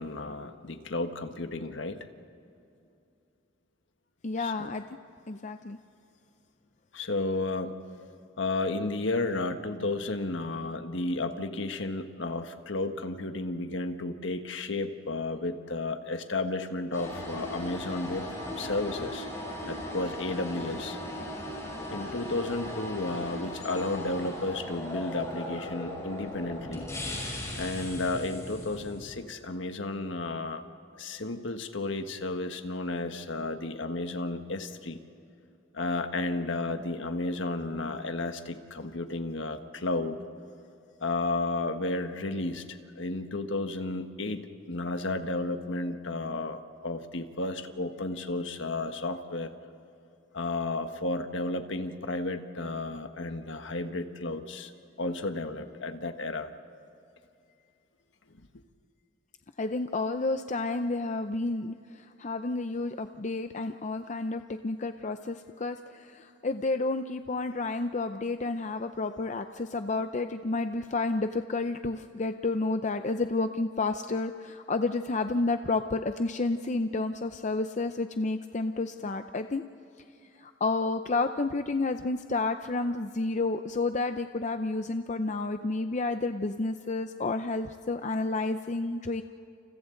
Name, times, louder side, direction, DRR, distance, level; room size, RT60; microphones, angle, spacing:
voice 1, 0.0-2.1 4.4-4.7 6.9-7.8 8.4-18.3 18.6-19.3 19.7-21.0 21.9-26.8 27.5-30.6 31.0-35.0 35.7-40.2 41.0-49.5 50.3-54.7 55.0-56.5, left 2 dB, 75° left, 1.5 m, -32 dB
voice 2, 4.2-4.8 5.3-5.8 59.6-79.6 80.4-89.2, left 3 dB, 40° left, 0.6 m, -30 dB
sound 1, 16.9-29.2, left 1 dB, 15° left, 5.5 m, -38 dB
29.5 x 29.0 x 3.9 m
head